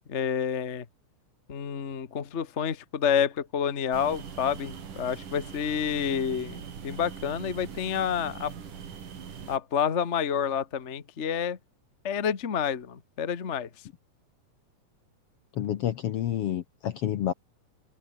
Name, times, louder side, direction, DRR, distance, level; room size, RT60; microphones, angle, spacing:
voice 1, 0.1-0.8 1.5-8.5 9.5-11.6 12.0-13.7, left 8 dB, 40° left, 1.0 m, -29 dB
sound 1, 3.9-9.6, right 7 dB, 80° right, 4.6 m, -42 dB
voice 2, 15.6-17.3, left 11 dB, 65° left, 1.6 m, -29 dB
omnidirectional pair, 3.6 m